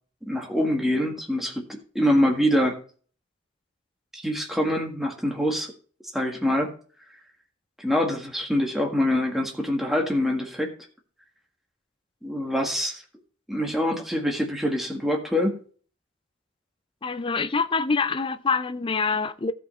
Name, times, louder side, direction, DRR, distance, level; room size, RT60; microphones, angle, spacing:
voice 1, 0.2-2.8 4.1-5.7 6.1-6.7 7.8-10.7 12.2-13.0 13.5-15.6, left 1 dB, ahead, 1.7 m, -25 dB
voice 2, 17.0-19.5, left 4 dB, 25° left, 0.5 m, -25 dB
15.0 x 5.4 x 4.3 m
head